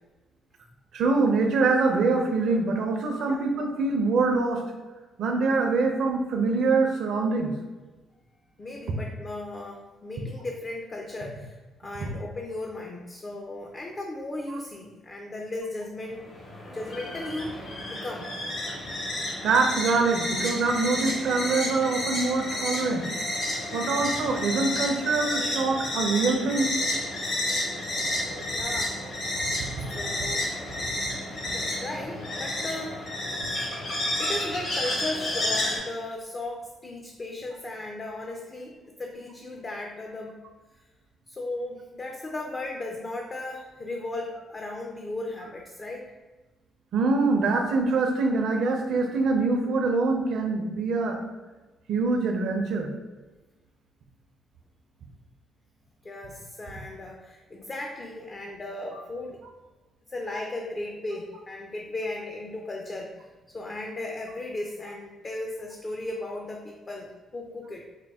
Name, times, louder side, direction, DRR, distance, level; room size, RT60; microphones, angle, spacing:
voice 1, 0.9-4.6 5.2-7.5 12.0-12.1 19.4-23.0 23.7-26.7 46.9-51.2 51.9-52.9, right 3 dB, 70° right, 3 dB, 0.6 m, -24 dB
voice 2, 8.6-11.5 11.8-16.3 16.7-18.3 28.5-29.6 29.9-30.5 31.5-33.0 34.2-40.4 41.3-46.1 56.0-59.4 60.1-67.9, left 2 dB, 35° left, 1 dB, 0.4 m, -36 dB
sound 1, 16.1-35.8, left 1 dB, 70° left, 1.5 m, -31 dB
4.4 x 2.2 x 3.5 m, 1.2 s
cardioid pair, 90°, 0 cm